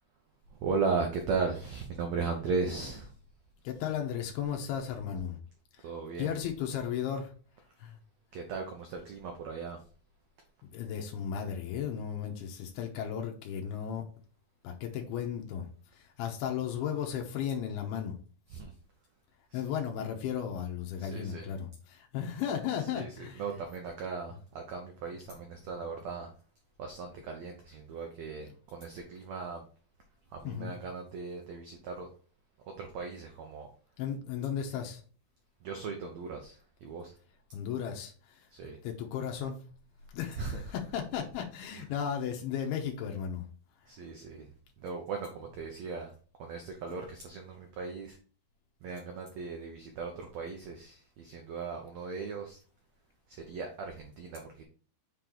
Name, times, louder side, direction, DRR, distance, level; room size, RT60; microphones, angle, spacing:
voice 1, 0.6-3.1 5.8-6.3 8.3-9.8 18.5-18.7 19.5-19.6 21.0-21.5 22.9-26.3 26.8-29.6 30.4-32.1 32.8-33.7 35.6-37.1 38.5-38.8 40.4-40.6 43.9-44.5 44.8-46.1 46.4-48.2 48.8-52.6 53.3-54.6, right 4 dB, 80° right, 1.5 m, -37 dB
voice 2, 3.6-5.4 6.2-7.3 7.8-8.0 10.6-14.0 14.6-15.7 16.0-18.2 19.5-23.5 28.4-28.5 30.4-30.8 34.0-35.0 37.5-38.4 38.8-39.6 40.1-43.5, left 8 dB, 85° left, 2.9 m, -35 dB
7.3 x 3.9 x 4.4 m
omnidirectional pair, 4.5 m